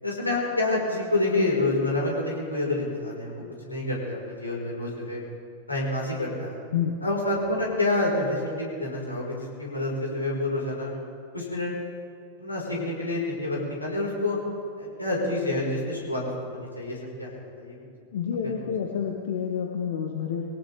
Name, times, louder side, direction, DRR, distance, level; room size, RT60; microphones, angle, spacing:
voice 1, 0.0-5.2 5.7-6.6 7.0-10.9 11.3-11.8 12.4-14.4 14.8-16.2 16.5-17.8 18.4-18.5, left 2 dB, 85° left, -3 dB, 4.6 m, -28 dB
voice 2, 6.7-7.0 18.1-20.4, left 8 dB, 60° left, 2 dB, 1.2 m, -29 dB
23.0 x 17.5 x 3.5 m, 2.4 s
figure-of-eight pair, 90°, 0 cm